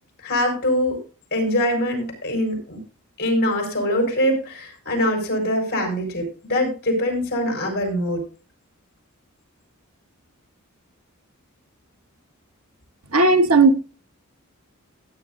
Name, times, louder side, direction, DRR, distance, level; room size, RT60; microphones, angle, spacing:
voice 1, 0.2-1.0 1.3-2.8 3.2-8.2, left 1 dB, 50° left, 4.7 m, -23 dB
voice 2, 13.1-13.7, right 3 dB, 85° right, 1.1 m, -15 dB
16.0 x 9.7 x 2.6 m
head